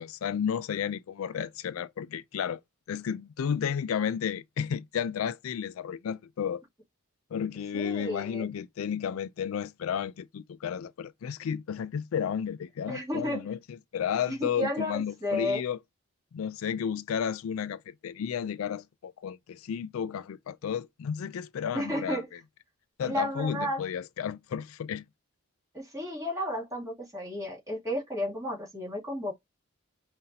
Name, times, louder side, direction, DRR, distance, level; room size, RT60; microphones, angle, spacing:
voice 1, 0.0-2.6 2.9-6.6 7.3-15.8 16.3-22.2 23.0-25.0, left 8 dB, 75° left, 0.3 m, -32 dB
voice 2, 7.7-8.5 12.9-13.5 14.3-15.6 21.7-22.3 23.0-23.8 25.7-29.3, left 1 dB, 15° right, 2.4 m, -32 dB
5.6 x 2.5 x 2.7 m
head